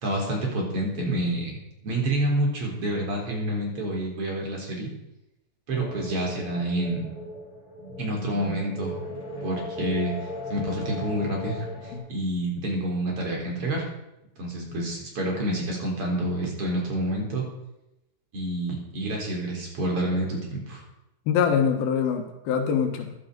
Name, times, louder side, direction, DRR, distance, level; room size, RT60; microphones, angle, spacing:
voice 1, 0.0-1.6 1.8-4.9 5.7-7.1 8.0-9.0 9.4-10.1 10.5-13.8 14.4-17.4 18.3-20.8, right 1 dB, 40° right, -1 dB, 4.4 m, -28 dB
sound 1, 5.7-11.9, left 1 dB, 45° left, 5.3 m, -37 dB
voice 2, 21.3-23.1, left 7 dB, 90° left, 5 dB, 3.3 m, -24 dB
15.0 x 11.5 x 5.3 m, 0.89 s
omnidirectional pair, 4.1 m